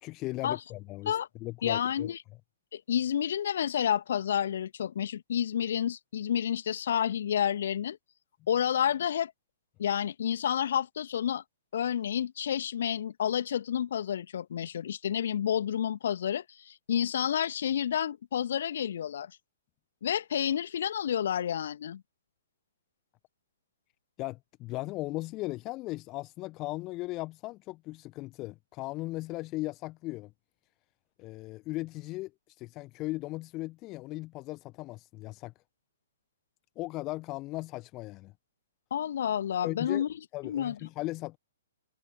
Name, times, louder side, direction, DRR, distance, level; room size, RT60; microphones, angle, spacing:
voice 1, 0.0-2.1 24.2-30.3 31.2-32.3 32.6-35.5 36.7-38.3 39.6-40.0 40.3-41.4, left 20 dB, 25° left, 1.4 m, -37 dB
voice 2, 1.6-2.2 2.7-8.0 8.5-9.3 9.8-11.4 11.7-19.3 20.0-22.0 38.9-40.1 40.4-40.7, left 9 dB, 55° left, 1.9 m, -30 dB
figure-of-eight pair, 115°, 0 cm